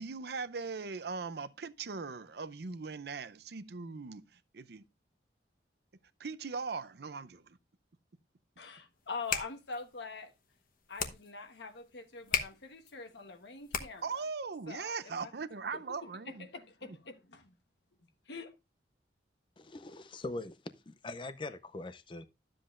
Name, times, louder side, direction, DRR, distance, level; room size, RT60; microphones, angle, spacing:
voice 1, 0.0-4.2 4.5-4.8 6.2-7.6 14.0-16.5, right 4 dB, 65° right, 0.6 m, -39 dB
voice 2, 8.6-10.3 10.9-14.2 14.7-15.3 15.7-17.5 18.3-18.5, left 4 dB, 75° left, 1.2 m, -44 dB
sound 1, 9.0-14.2, left 7 dB, 50° left, 1.1 m, -39 dB
voice 3, 19.6-20.6 20.9-22.2, left 2 dB, 30° left, 0.5 m, -42 dB
12.0 x 7.6 x 2.4 m
head